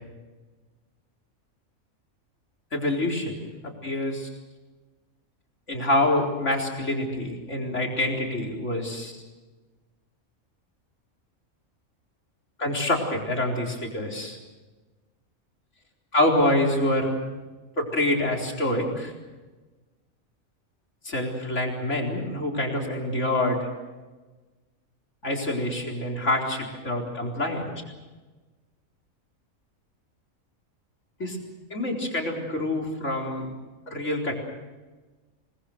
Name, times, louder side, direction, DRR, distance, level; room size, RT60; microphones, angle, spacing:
voice 1, 2.7-4.3 5.7-9.1 12.6-14.4 16.1-17.2 17.8-19.1 21.0-23.7 25.2-27.7 31.2-31.4 31.7-33.5 33.9-34.3, left 1 dB, 60° left, 0 dB, 4.6 m, -26 dB
27.5 x 20.5 x 6.6 m, 1.2 s
omnidirectional pair, 1.4 m